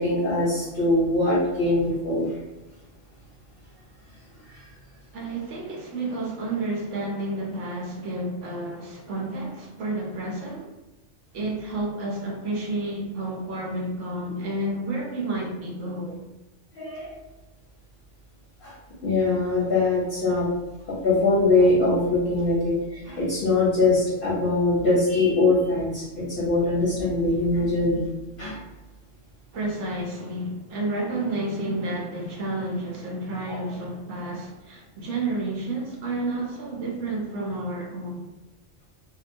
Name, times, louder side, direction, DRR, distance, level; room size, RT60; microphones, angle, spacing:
voice 1, 0.0-2.3 16.7-17.1 18.6-18.7 19.0-20.5 20.9-28.0 28.4-28.6 33.5-33.6, left 2 dB, 55° left, 0.8 m, -22 dB
voice 2, 5.1-10.7 11.3-16.3 29.5-38.3, right 2 dB, 75° right, 1.0 m, -30 dB
2.8 x 2.2 x 2.5 m
omnidirectional pair, 1.3 m